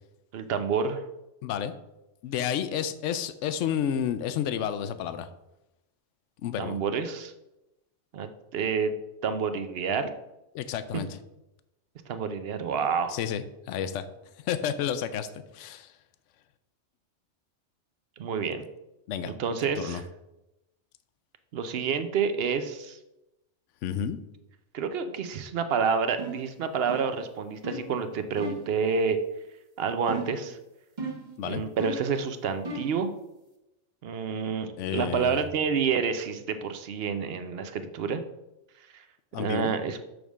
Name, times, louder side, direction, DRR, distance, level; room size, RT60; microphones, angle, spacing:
voice 1, 0.3-1.0 6.6-7.3 8.1-8.9 9.2-10.1 12.1-13.2 18.2-18.6 19.3-20.0 21.5-23.0 24.7-29.2 29.8-30.6 31.4-33.1 34.0-38.2 38.9-39.0 39.4-40.0, right 6 dB, 60° right, 9 dB, 0.8 m, -28 dB
voice 2, 1.4-1.7 2.2-5.3 6.4-6.8 10.5-11.1 13.1-14.1 14.5-15.3 15.5-15.9 19.1-19.3 19.8-20.0 23.8-24.2 31.4-31.6 34.8-35.4 39.3-39.7, left 9 dB, 80° left, 12 dB, 0.9 m, -30 dB
sound 1, 26.2-26.5 26.9-27.2 27.6-27.9 28.4-28.7 30.1-30.5 31.0-31.3 31.8-32.1 32.6-33.0, right 2 dB, 40° right, 1.1 m, -35 dB
6.4 x 3.5 x 6.1 m, 0.93 s
omnidirectional pair, 1.2 m